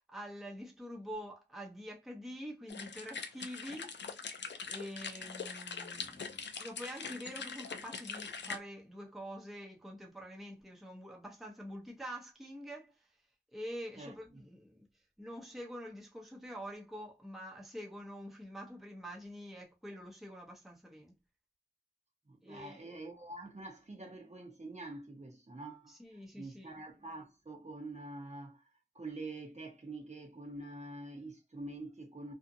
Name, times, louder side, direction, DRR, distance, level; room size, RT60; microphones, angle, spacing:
voice 1, 0.1-3.9 4.7-13.1 13.5-14.9 15.2-21.1 22.4-23.0 25.9-26.8, equal, ahead, 0.7 m, -46 dB
sound 1, 2.7-8.6, left 5 dB, 70° left, 0.4 m, -43 dB
voice 2, 14.0-14.4 22.3-25.9 26.3-28.7 28.9-32.3, right 2 dB, 35° right, 0.8 m, -46 dB
2.6 x 2.4 x 2.6 m
wide cardioid pair, 55°, 19 cm